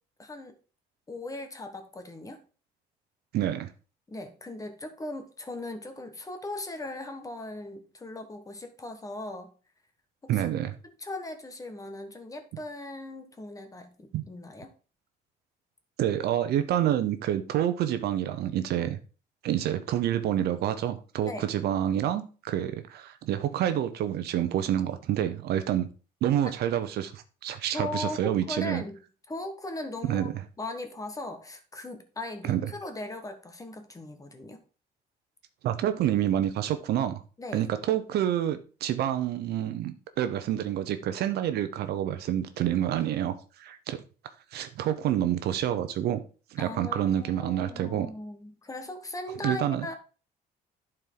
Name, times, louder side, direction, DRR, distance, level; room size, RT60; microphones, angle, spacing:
voice 1, 0.2-0.5 1.1-2.4 4.1-9.5 10.2-10.3 10.8-14.7 21.2-21.5 26.4-26.6 27.7-29.0 29.3-30.3 30.6-34.6 37.4-37.6 46.6-49.9, left 2 dB, 20° left, 7 dB, 1.4 m, -38 dB
voice 2, 3.3-3.7 10.3-10.7 14.1-14.2 16.0-19.0 19.4-25.9 26.2-28.8 30.0-30.3 32.4-32.6 35.6-37.1 37.5-44.0 44.5-46.2 46.5-48.1 49.4-49.9, right 11 dB, 70° right, 10 dB, 0.9 m, -28 dB
11.0 x 4.5 x 3.9 m, 0.36 s
cardioid pair, 110°, 17 cm